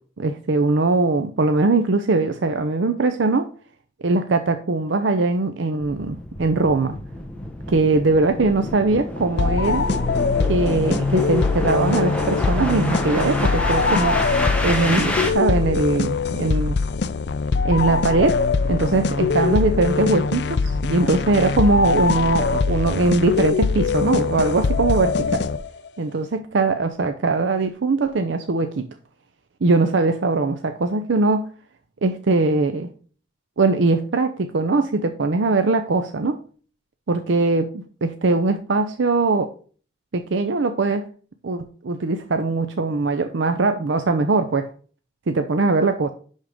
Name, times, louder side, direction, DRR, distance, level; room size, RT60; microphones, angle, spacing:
voice 1, 0.2-3.5 4.0-7.0 7.7-9.9 10.5-14.2 14.6-16.8 17.6-18.4 18.7-25.4 26.0-28.9 29.6-31.4 32.0-32.9 33.6-36.4 37.1-39.5 40.1-41.0 41.4-44.7 45.3-46.1, right 3 dB, 80° right, 8 dB, 0.6 m, -21 dB
sound 1, 5.8-15.3, left 1 dB, 5° left, 1.1 m, -29 dB
sound 2, 9.4-25.9, left 4 dB, 65° left, 0.5 m, -22 dB
10.5 x 3.7 x 5.1 m, 0.42 s
head